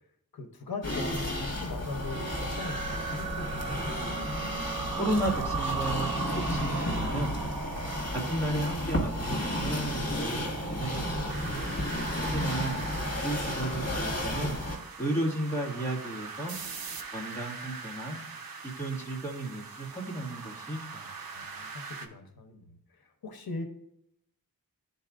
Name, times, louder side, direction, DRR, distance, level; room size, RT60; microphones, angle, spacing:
voice 1, 0.3-3.9 21.3-23.6, left 3 dB, 85° left, 6 dB, 0.9 m, -41 dB
sound 1, 0.8-14.8, left 1 dB, 45° left, 1.6 m, -32 dB
sound 2, 1.8-6.6, right 7 dB, 30° right, 1.2 m, -42 dB
sound 3, 2.6-22.1, right 5 dB, 80° right, 0.8 m, -40 dB
voice 2, 5.0-6.1 6.4-7.4 8.3-11.5 12.2-12.8 13.2-14.6 15.0-16.5 17.1-18.2 18.6-21.1, right 1 dB, 10° left, -4 dB, 1.8 m, -33 dB
11.0 x 4.1 x 2.4 m, 0.76 s
wide cardioid pair, 95°, 35 cm